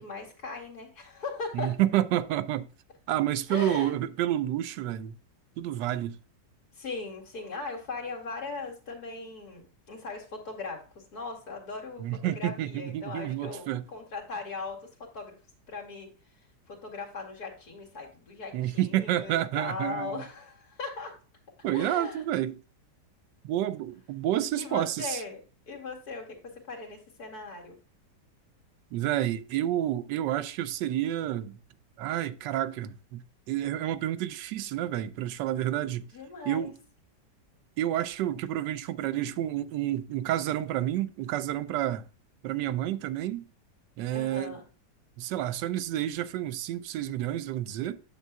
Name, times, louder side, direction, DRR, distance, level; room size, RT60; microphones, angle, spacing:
voice 1, 0.0-1.8 3.5-3.9 6.7-15.4 15.7-16.1 16.7-21.2 21.7-22.2 24.6-25.4 25.7-27.8 36.1-36.7 44.1-44.6, left 4 dB, 60° left, 2.6 m, -39 dB
voice 2, 1.5-2.7 3.1-5.2 5.6-6.2 12.0-13.8 18.5-20.2 21.6-22.6 23.4-25.2 28.9-31.6 32.0-36.1 36.5-36.8 37.8-42.1 42.4-43.5 44.0-44.6 45.2-48.0, right 12 dB, 90° right, 1.2 m, -29 dB
9.3 x 7.3 x 2.3 m
omnidirectional pair, 1.8 m